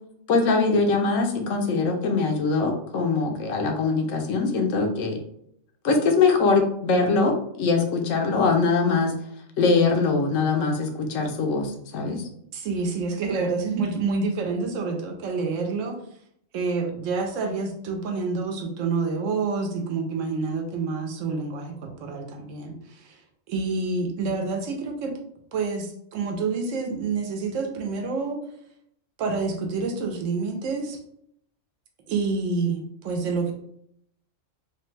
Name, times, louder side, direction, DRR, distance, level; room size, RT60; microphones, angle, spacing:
voice 1, 0.3-5.2 5.8-9.1 9.6-12.3, left 4 dB, 80° left, 4 dB, 1.0 m, -22 dB
voice 2, 12.5-15.9 16.5-23.2 23.5-25.1 25.5-28.4 29.2-31.0 32.1-33.5, right 4 dB, 85° right, 3 dB, 1.0 m, -28 dB
3.2 x 2.1 x 3.1 m, 0.71 s
omnidirectional pair, 1.3 m